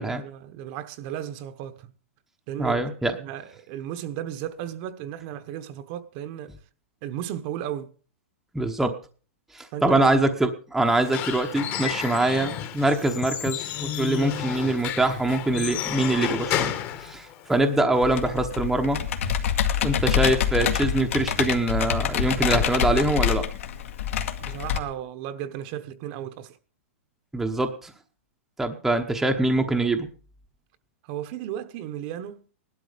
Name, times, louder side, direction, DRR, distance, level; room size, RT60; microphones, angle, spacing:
voice 1, 0.1-1.9 2.5-6.5 7.0-7.9 9.7-10.0 24.4-26.6 31.1-32.4, right 11 dB, 35° right, 1.1 m, -35 dB
voice 2, 2.6-3.2 8.5-8.9 9.5-16.7 17.0-19.0 19.8-23.4 27.3-27.9 28.6-30.1, right 2 dB, 5° right, 1.0 m, -24 dB
Squeak / Wood, 10.9-17.8, left 10 dB, 30° left, 1.4 m, -31 dB
Computer keyboard, 18.0-24.8, left 9 dB, 65° left, 2.0 m, -26 dB
17.5 x 12.0 x 5.1 m
hypercardioid pair, 155°, 8 cm